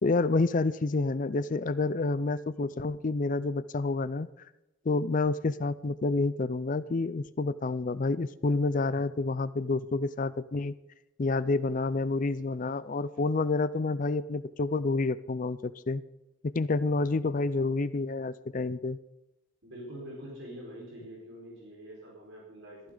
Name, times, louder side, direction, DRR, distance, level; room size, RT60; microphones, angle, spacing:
voice 1, 0.0-4.5 4.9-10.7 11.2-16.0 16.4-19.0, left 3 dB, 35° left, 16 dB, 0.4 m, -29 dB
voice 2, 19.6-22.8, equal, 60° right, -3 dB, 4.7 m, -45 dB
15.0 x 13.0 x 3.9 m, 0.95 s
head